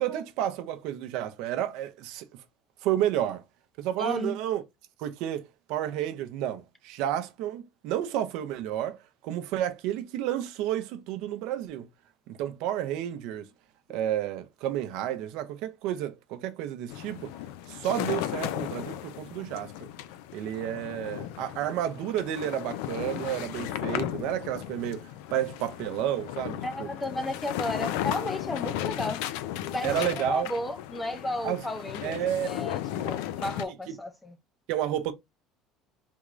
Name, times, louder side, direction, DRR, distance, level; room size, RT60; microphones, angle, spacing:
voice 1, 0.0-2.2 2.8-3.4 3.8-4.6 5.0-5.4 5.7-9.0 9.2-11.9 12.3-13.5 13.9-17.3 17.7-19.7 20.3-26.9 29.8-30.5 31.4-31.6 32.0-32.6 32.9-33.0 33.9-34.0 34.7-35.1, right 11 dB, 60° right, 0.5 m, -31 dB
voice 2, 4.0-4.4 13.9-14.1 26.6-29.2 29.7-32.8 33.0-34.4, left 1 dB, 5° left, 0.5 m, -33 dB
sound 1, 16.9-33.6, left 12 dB, 85° left, 0.3 m, -35 dB
3.5 x 3.1 x 2.4 m
cardioid pair, 170°, 0 cm